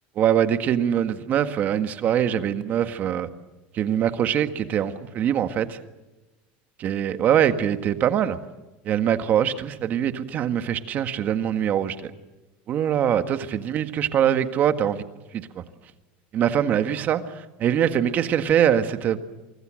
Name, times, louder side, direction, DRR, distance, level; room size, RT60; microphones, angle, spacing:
voice 1, 0.1-3.3 3.7-5.8 6.8-8.4 8.8-12.1 12.7-15.0 15.3-15.6 16.3-19.2, right 9 dB, 35° right, 1.7 m, -23 dB
29.5 x 25.0 x 6.5 m
supercardioid pair, 155°, 5 cm